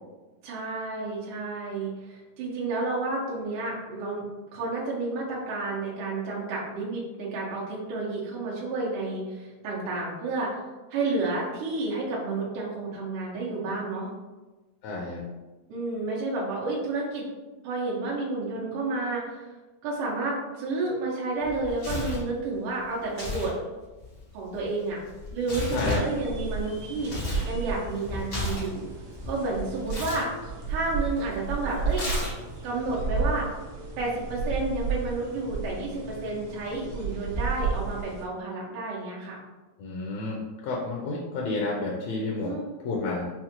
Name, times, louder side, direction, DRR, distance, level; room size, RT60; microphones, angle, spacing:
voice 1, 0.4-4.3 4.5-10.6 10.9-14.1 15.7-17.3 17.6-19.4 19.8-23.5 24.3-25.0 25.3-27.1 27.5-28.9 29.3-30.3 30.7-32.0 32.6-33.5 34.0-39.4 42.4-42.7, right 3 dB, 90° right, -5 dB, 2.3 m, -30 dB
voice 2, 14.8-15.2 25.7-26.0 39.8-42.5 42.8-43.2, left 2 dB, 80° left, -2 dB, 1.6 m, -30 dB
Tearing, 21.4-22.3 23.1-23.5 23.8-27.5 27.8-29.3 29.9-30.2 31.9-32.6, left 2 dB, 55° left, 0.7 m, -33 dB
sound 1, 25.6-38.2, right 4 dB, 75° right, 1.4 m, -33 dB
5.7 x 2.1 x 2.8 m, 1.2 s
omnidirectional pair, 3.5 m